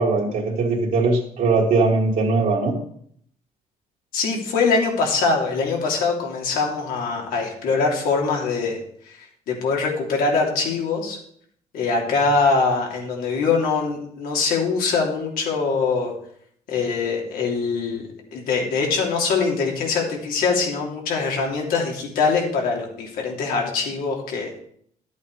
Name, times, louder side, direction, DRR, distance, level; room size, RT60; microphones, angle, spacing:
voice 1, 0.0-2.8, right 3 dB, 60° right, -3 dB, 1.8 m, -20 dB
voice 2, 4.1-8.8 9.1-11.2 11.7-16.1 16.7-18.0 18.3-24.6, left 4 dB, 85° left, 0 dB, 3.1 m, -23 dB
12.0 x 8.4 x 4.9 m, 0.65 s
cardioid pair, 155°, 14 cm